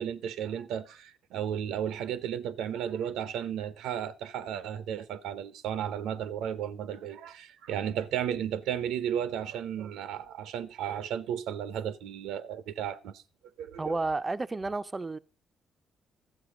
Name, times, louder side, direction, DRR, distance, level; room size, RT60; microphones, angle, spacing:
voice 1, 0.0-13.2 13.6-13.8, right 9 dB, 90° right, 0.7 m, -34 dB
voice 2, 13.8-15.2, right 3 dB, 25° right, 0.4 m, -31 dB
12.5 x 7.7 x 4.9 m
cardioid pair, 90°, 0 cm